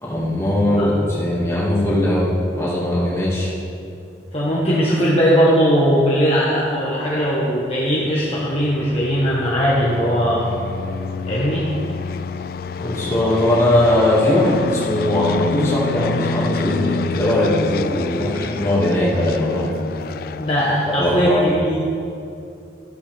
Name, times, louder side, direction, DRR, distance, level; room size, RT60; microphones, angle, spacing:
voice 1, 0.0-3.5 12.8-19.7 20.9-21.4, left 1 dB, 15° left, -7 dB, 2.1 m, -19 dB
voice 2, 4.3-10.5 11.3-11.7 20.4-21.8, equal, 35° left, -6 dB, 1.2 m, -19 dB
sound 1, 7.7-21.0, left 5 dB, 55° left, 0.3 m, -28 dB
13.0 x 8.0 x 3.5 m, 2.6 s
head